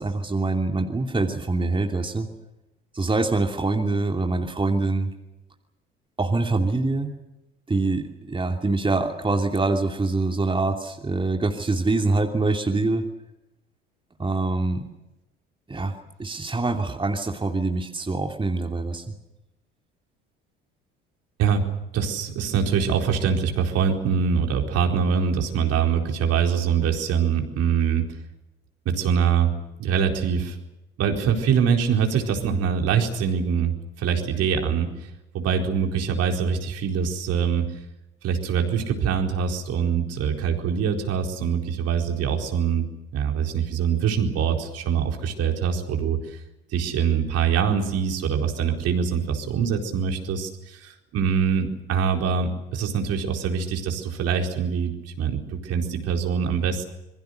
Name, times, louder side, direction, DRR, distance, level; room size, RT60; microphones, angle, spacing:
voice 1, 0.0-2.3 2.9-5.1 6.2-7.1 7.7-13.0 14.2-14.8 15.7-15.9 16.2-19.0, right 3 dB, 15° right, 3 dB, 2.8 m, -24 dB
voice 2, 21.9-28.1 28.8-29.5 29.8-30.6 31.0-35.1 35.3-37.7 38.2-42.9 43.1-46.4 46.7-56.9, right 7 dB, 55° right, 3 dB, 4.4 m, -24 dB
26.5 x 22.5 x 6.6 m, 0.95 s
hypercardioid pair, 60°, 30 cm